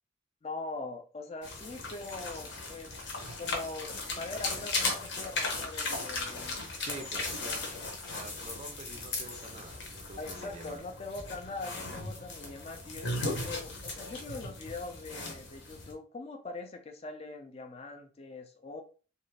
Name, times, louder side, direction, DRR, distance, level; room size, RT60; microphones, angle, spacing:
voice 1, 0.4-6.6 6.9-7.1 7.5-7.7 10.2-18.8, left 3 dB, 30° left, 4 dB, 0.4 m, -42 dB
sound 1, 1.4-15.9, left 3 dB, 65° left, 0.8 m, -37 dB
voice 2, 6.8-7.7 8.1-10.8, right 2 dB, 35° right, 6 dB, 0.4 m, -46 dB
2.5 x 2.3 x 3.2 m, 0.36 s
head